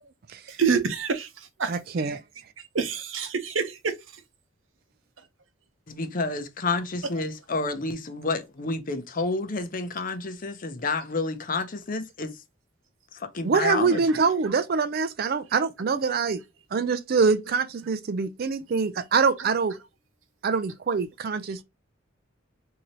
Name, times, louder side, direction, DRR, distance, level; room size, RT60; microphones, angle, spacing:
voice 1, 0.6-1.3 1.6-1.7 2.0-2.2 2.7-3.9 7.2-7.3, right 5 dB, 80° right, 0.8 m, -26 dB
voice 2, 1.7-2.2 13.4-16.4 16.7-19.7 20.4-21.6, right 5 dB, 50° right, 0.4 m, -24 dB
voice 3, 5.9-12.3 13.3-14.0, left 3 dB, 45° left, 0.7 m, -29 dB
3.9 x 2.8 x 3.0 m
head